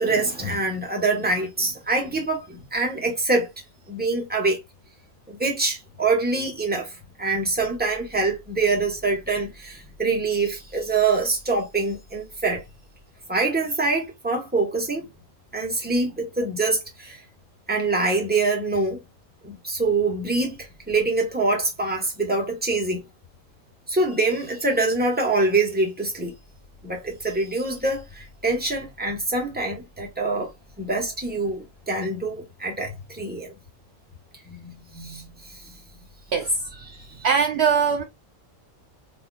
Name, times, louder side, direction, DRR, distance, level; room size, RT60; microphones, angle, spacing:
voice 1, 0.0-3.5 3.9-4.6 5.3-6.9 7.2-12.6 13.3-15.1 15.5-17.2 17.7-19.0 19.4-23.0 23.9-26.3 26.8-30.5 30.8-33.5 34.5-35.6 36.9-37.0, right 3 dB, 10° right, 1.1 m, -25 dB
voice 2, 36.3-36.7 37.2-38.0, right 5 dB, 65° right, 0.7 m, -21 dB
3.9 x 2.8 x 2.3 m
omnidirectional pair, 1.3 m